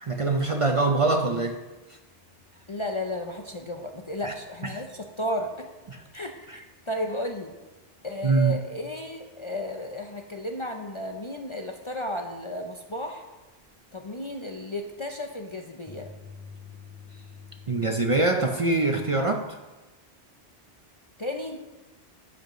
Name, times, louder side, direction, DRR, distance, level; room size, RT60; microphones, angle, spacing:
voice 1, 0.0-1.6 4.2-4.3 5.9-6.0 6.5-6.6 8.2-8.5 17.7-19.4, right 3 dB, 40° right, 4 dB, 0.5 m, -23 dB
sound 1, 2.1-7.0 7.3-7.5 7.9-8.0 8.5-8.6 13.6-13.7 15.9-18.1, left 5 dB, 15° left, 1.2 m, -50 dB
voice 2, 2.7-5.7 6.1-7.6 8.0-13.3 13.9-16.1 19.2-19.4 21.2-21.6, left 1 dB, 35° left, 4 dB, 0.5 m, -33 dB
12.0 x 7.9 x 3.1 m, 1.1 s
omnidirectional pair, 1.1 m